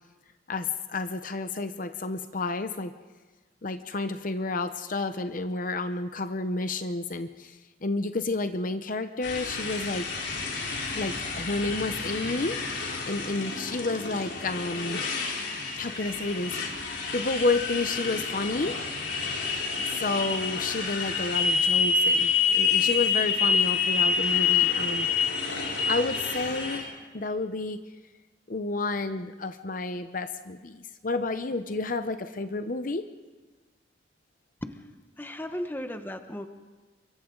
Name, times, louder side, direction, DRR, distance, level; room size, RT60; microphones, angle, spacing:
voice 1, 0.5-2.9 3.6-10.1 10.9-12.6 13.1-15.0 15.8-16.5 17.1-18.8 20.0-25.1 25.9-27.8 28.5-33.1, left 3 dB, 45° left, 9 dB, 0.8 m, -30 dB
Motorcycle, 9.2-26.8, left 5 dB, 75° left, 3.9 m, -28 dB
voice 2, 35.2-36.5, equal, 10° left, 7 dB, 1.1 m, -35 dB
28.0 x 24.0 x 3.9 m, 1.3 s
head